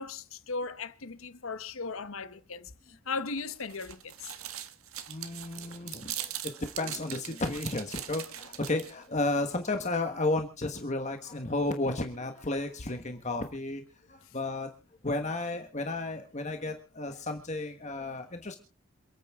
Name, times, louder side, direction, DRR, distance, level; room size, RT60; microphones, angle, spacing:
voice 1, 0.0-4.3, left 4 dB, 75° left, 1.0 m, -37 dB
sound 1, 3.4-9.1, right 11 dB, 85° right, 1.6 m, -41 dB
voice 2, 5.1-6.3 6.6-13.8 14.1-14.7 15.0-18.6, left 2 dB, 35° left, 1.3 m, -33 dB
27.5 x 9.4 x 3.6 m
head